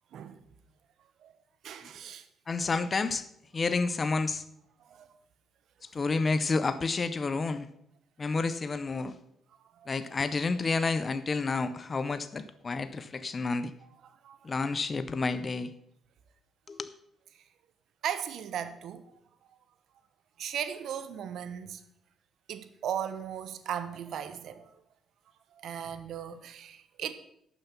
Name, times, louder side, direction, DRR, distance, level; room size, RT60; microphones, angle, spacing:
voice 1, 0.1-0.4 1.2-1.3 1.6-2.3 4.8-5.1 9.7-9.9 14.2-14.5 18.0-19.1 20.4-21.8 22.5-24.8 25.5-27.1, right 9 dB, 70° right, 1.0 m, -37 dB
voice 2, 2.5-3.3 3.5-4.4 5.8-7.7 8.2-9.2 9.9-13.7 14.4-15.7 16.7-16.9, left 4 dB, 35° left, 0.7 m, -30 dB
11.5 x 7.0 x 5.9 m
cardioid pair, 90°, 0 cm